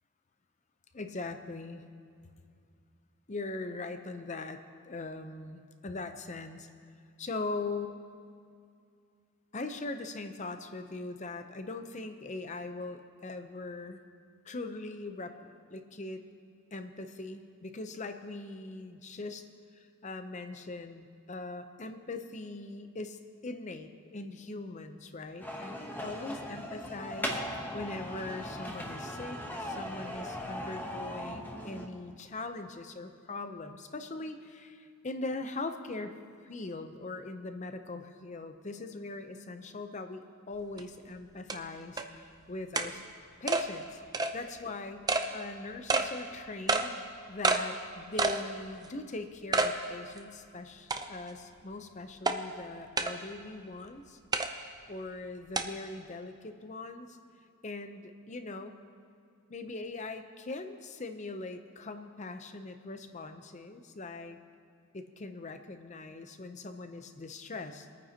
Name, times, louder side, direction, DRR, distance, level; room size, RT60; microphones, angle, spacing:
voice 1, 0.9-1.9 3.3-6.7 7.2-8.0 9.5-14.0 14.4-16.2 16.7-19.5 19.7-36.2 36.4-43.0 43.4-44.0 44.3-47.0 47.3-54.2 54.9-57.2 57.6-58.8 59.5-64.4 64.9-67.9, left 3 dB, 35° left, 8 dB, 0.6 m, -41 dB
sound 1, 25.4-31.9, equal, 10° left, 0.9 m, -38 dB
sound 2, 40.8-40.9 41.5-41.6 42.0-42.1 42.8-42.9 43.5-43.6 44.1-44.3 45.1-45.3 45.9-46.1 46.7-46.9 47.4-47.6 48.2-48.4 48.8-48.9 49.5-49.7 50.2-50.3 50.9-51.3 52.3-52.4 53.0-53.1 54.3-54.5 55.6-55.7, right 3 dB, 15° right, 0.5 m, -27 dB
24.0 x 9.3 x 2.8 m, 2.3 s
head